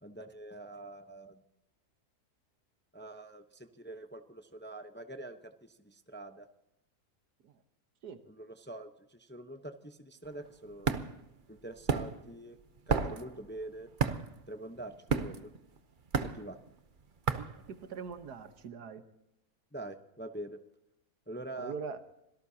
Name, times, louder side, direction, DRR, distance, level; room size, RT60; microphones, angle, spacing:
voice 1, 0.0-1.4 2.9-6.5 8.2-11.1 11.5-12.6 12.9-13.9 14.5-15.5 16.2-16.6 19.7-20.6 21.3-21.7, right 1 dB, 10° left, 7 dB, 0.7 m, -45 dB
sound 1, 10.2-18.4, right 5 dB, 40° right, 0.8 m, -34 dB
voice 2, 17.3-19.0 21.6-22.0, right 5 dB, 80° right, 9 dB, 1.7 m, -42 dB
25.5 x 17.5 x 2.9 m, 0.87 s
omnidirectional pair, 1.7 m